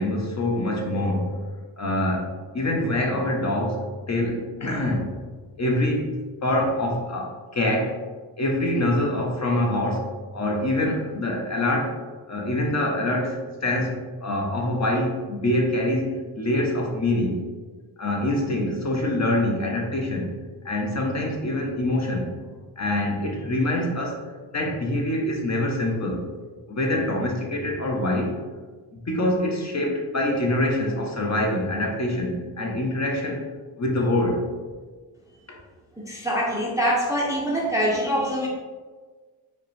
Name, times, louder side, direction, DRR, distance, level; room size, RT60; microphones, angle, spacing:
voice 1, 0.0-1.4 1.8-5.1 5.6-6.1 6.4-7.9 8.4-11.9 12.3-17.4 18.0-20.3 20.6-22.5 22.8-24.2 24.5-26.2 26.7-28.3 28.9-33.4 33.8-34.4 35.5-35.6, left 1 dB, 35° left, 0 dB, 0.8 m, -25 dB
voice 2, 36.0-38.5, equal, 5° right, -3 dB, 0.4 m, -24 dB
4.6 x 2.2 x 3.2 m, 1.4 s
cardioid pair, 85°, 49 cm